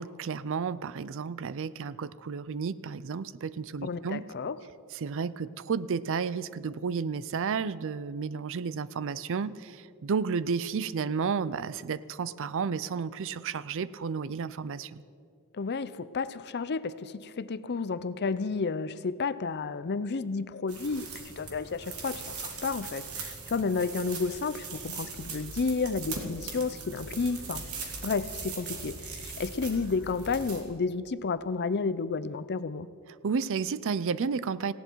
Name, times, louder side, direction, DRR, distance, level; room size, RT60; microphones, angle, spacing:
voice 1, 0.0-4.2 4.9-15.0 33.2-34.7, right 5 dB, 60° right, 18 dB, 0.5 m, -32 dB
voice 2, 3.8-4.6 15.5-32.9, left 4 dB, 50° left, 15 dB, 0.6 m, -31 dB
sound 1, 20.7-30.6, right 4 dB, 80° right, 2.4 m, -40 dB
18.5 x 16.5 x 4.6 m, 2.3 s
head